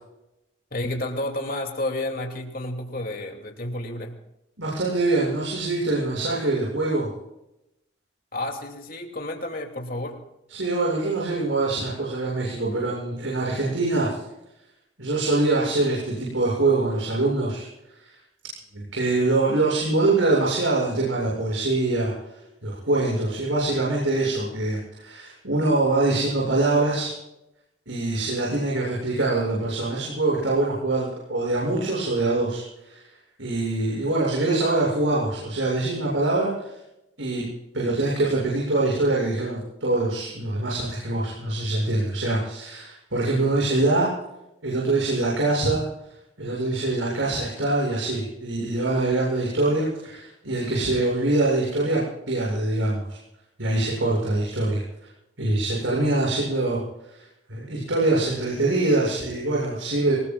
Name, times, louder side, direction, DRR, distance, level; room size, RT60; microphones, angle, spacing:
voice 1, 0.7-4.2 8.3-10.2, left 1 dB, 50° left, 3 dB, 2.9 m, -31 dB
voice 2, 4.6-7.1 10.5-14.2 15.0-17.7 18.0-18.1 18.7-22.1 22.6-27.1 27.9-33.0 33.4-36.8 37.2-37.4 37.7-44.1 44.6-45.8 46.4-53.2 53.6-54.8 55.4-60.2, right 2 dB, 90° right, -4 dB, 7.4 m, -24 dB
25.5 x 20.5 x 2.5 m, 0.89 s
head